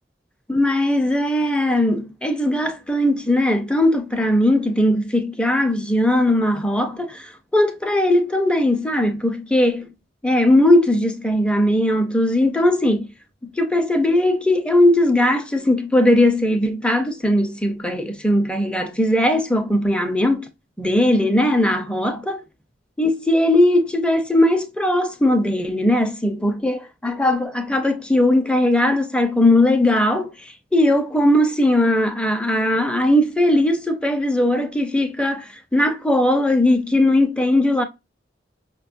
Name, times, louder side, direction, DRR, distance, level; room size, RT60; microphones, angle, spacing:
voice 1, 0.5-9.9 10.2-13.1 13.5-20.5 20.8-22.4 23.0-30.3 30.7-37.8, left 1 dB, 5° left, 0.5 m, -19 dB
5.3 x 2.3 x 2.5 m
head